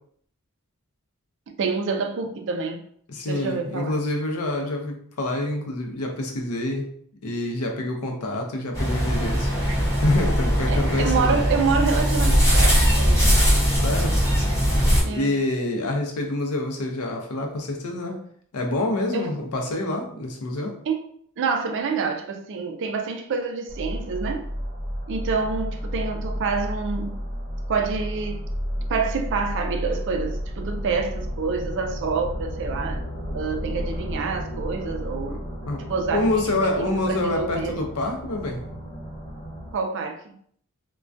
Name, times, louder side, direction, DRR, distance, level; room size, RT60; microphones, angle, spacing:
voice 1, 1.6-2.8 3.3-4.0 10.7-13.3 15.0-15.3 19.1-19.3 20.9-21.1 21.4-24.5 25.1-27.2 27.7-28.4 28.9-33.0 33.3-35.4 35.9-37.8 39.7-40.3, right 5 dB, 60° right, 5 dB, 0.4 m, -27 dB
voice 2, 3.1-6.9 7.2-9.5 10.0-11.4 13.8-14.2 15.0-18.2 18.5-20.8 35.3-35.4 35.7-35.8 36.1-38.6, left 2 dB, 85° left, 2 dB, 0.5 m, -26 dB
sound 1, 8.7-15.0, equal, 15° left, 0.9 m, -20 dB
sound 2, 23.7-39.7, equal, 40° left, 0.9 m, -32 dB
2.2 x 2.2 x 2.5 m, 0.63 s
head